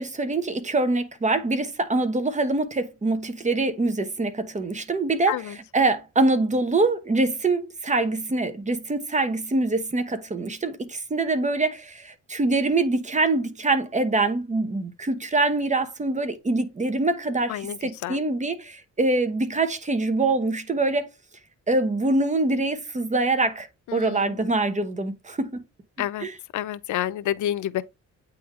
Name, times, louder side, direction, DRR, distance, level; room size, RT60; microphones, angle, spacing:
voice 1, 0.0-21.1 21.7-25.6 26.2-26.4, right 2 dB, 25° right, 1.0 m, -24 dB
voice 2, 23.9-24.4 26.0-26.3 26.5-27.8, left 12 dB, 85° left, 0.6 m, -29 dB
8.6 x 3.7 x 3.1 m
cardioid pair, 120°, 29 cm